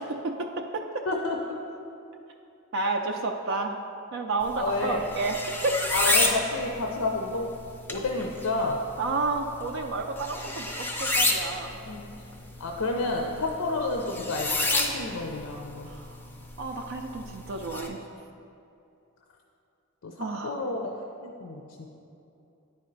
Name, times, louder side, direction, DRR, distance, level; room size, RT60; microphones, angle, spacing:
voice 1, 0.0-1.0 2.7-3.8 4.1-5.4 5.6-5.8 9.0-11.8 15.8-16.2 16.6-18.0 20.2-20.6, right 3 dB, 55° right, 3 dB, 0.4 m, -31 dB
voice 2, 1.1-1.4 4.6-5.0 5.9-7.5 7.9-8.8 11.9-12.1 12.6-15.9 20.0-20.1 20.4-20.9 21.2-21.6, left 2 dB, 75° left, 1 dB, 0.5 m, -29 dB
sound 1, 4.4-17.9, left 2 dB, 10° left, 0.4 m, -31 dB
9.9 x 4.3 x 3.9 m, 2.8 s
head